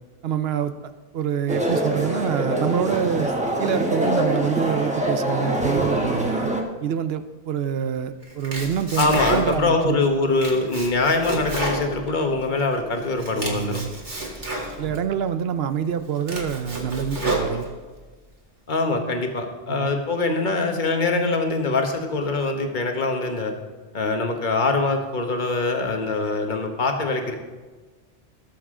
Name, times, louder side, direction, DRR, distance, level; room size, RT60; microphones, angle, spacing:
voice 1, 0.2-3.3 3.6-6.5 6.8-10.0 13.3-13.9 14.8-17.7 19.7-19.9, right 8 dB, 65° right, 11 dB, 0.8 m, -26 dB
sound 1, 1.5-6.6, right 1 dB, 5° right, 1.1 m, -24 dB
Domestic sounds home sounds, 8.2-9.8 10.1-12.6 13.0-15.0 15.6-15.7 16.1-18.0, right 1 dB, 45° right, 2.2 m, -30 dB
voice 2, 9.0-13.8 18.7-23.5 23.9-27.4, left 3 dB, 45° left, 4 dB, 1.3 m, -23 dB
18.0 x 7.1 x 3.7 m, 1.3 s
omnidirectional pair, 1.1 m